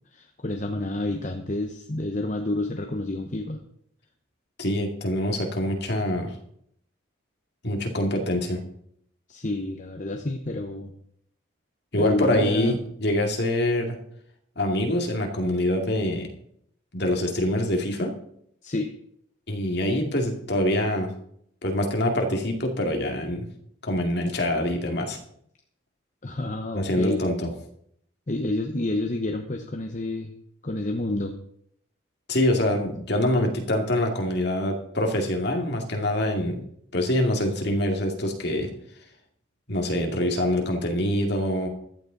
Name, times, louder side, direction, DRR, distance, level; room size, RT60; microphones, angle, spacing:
voice 1, 0.1-3.6 9.3-10.9 12.0-12.8 18.6-18.9 26.2-27.3 28.3-30.3 30.6-31.4, left 2 dB, 35° left, 5 dB, 0.9 m, -29 dB
voice 2, 4.6-6.3 7.6-8.6 11.9-14.0 14.6-16.3 16.9-18.1 19.5-21.1 21.6-23.5 23.8-25.2 26.7-27.5 32.3-36.6 36.9-38.7 39.7-41.7, left 1 dB, 55° left, 2 dB, 2.4 m, -25 dB
15.0 x 12.0 x 4.0 m, 0.69 s
head